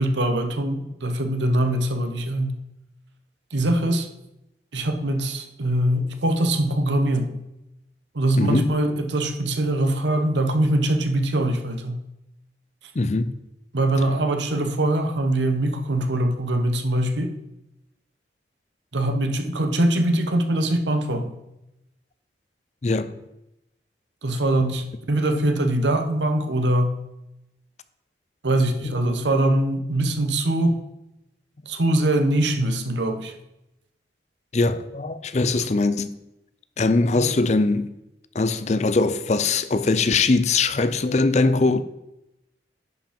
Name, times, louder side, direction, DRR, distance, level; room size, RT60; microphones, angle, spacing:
voice 1, 0.0-2.5 3.5-4.1 4.7-7.3 8.1-12.0 13.7-17.3 18.9-21.3 24.2-26.9 28.4-30.8 31.7-33.3 35.5-35.7, right 1 dB, 90° right, 1.0 m, -22 dB
voice 2, 8.4-8.7 12.9-13.3 22.8-23.1 28.8-29.0 34.5-36.1 36.8-37.9 38.3-41.8, left 3 dB, 40° left, 0.5 m, -21 dB
10.5 x 5.3 x 5.2 m
head